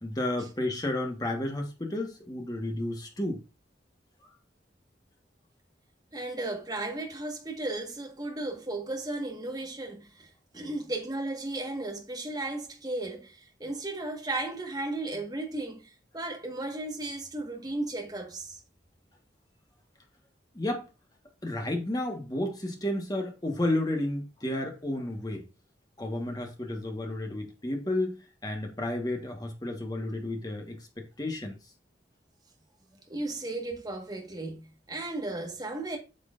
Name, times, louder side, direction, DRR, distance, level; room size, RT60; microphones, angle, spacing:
voice 1, 0.0-3.4 20.5-20.9 21.4-25.4 26.0-31.6, left 1 dB, 20° left, 1.4 m, -32 dB
voice 2, 6.1-18.6 33.1-36.0, right 2 dB, 20° right, 1.5 m, -35 dB
8.7 x 6.4 x 2.5 m
head